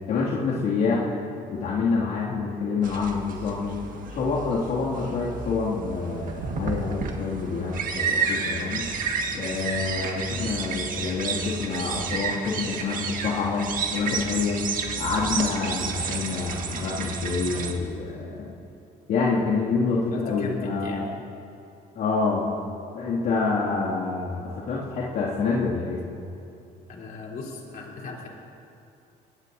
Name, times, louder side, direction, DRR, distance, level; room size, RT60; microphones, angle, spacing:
voice 1, 0.1-1.1 1.5-3.8 4.1-8.9 9.3-14.6 15.0-18.5 19.1-21.1 21.9-22.5 22.9-26.1, left 4 dB, 75° left, -7 dB, 2.4 m, -27 dB
sound 1, 2.8-17.7, right 5 dB, 55° right, 1.7 m, -31 dB
voice 2, 20.1-21.1 26.9-28.3, left 3 dB, 55° left, -2 dB, 3.5 m, -37 dB
23.0 x 17.5 x 2.7 m, 2.7 s
cardioid pair, 110°, 17 cm